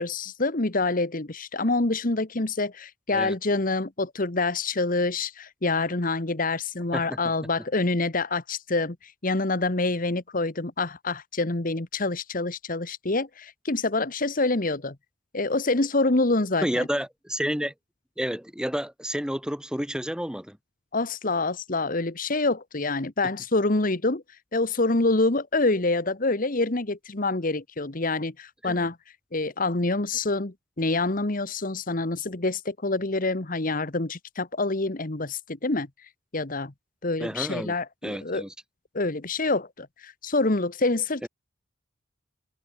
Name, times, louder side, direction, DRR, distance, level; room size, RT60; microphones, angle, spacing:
voice 1, 0.0-14.9 15.3-16.9 20.9-24.2 24.5-29.0 29.3-36.7 37.0-38.4 38.9-41.3, left 2 dB, 45° left, 1.5 m, -26 dB
voice 2, 16.6-17.7 18.2-20.6 28.6-28.9 37.2-37.7 38.0-38.5 41.2-41.3, equal, 5° right, 2.1 m, -30 dB
head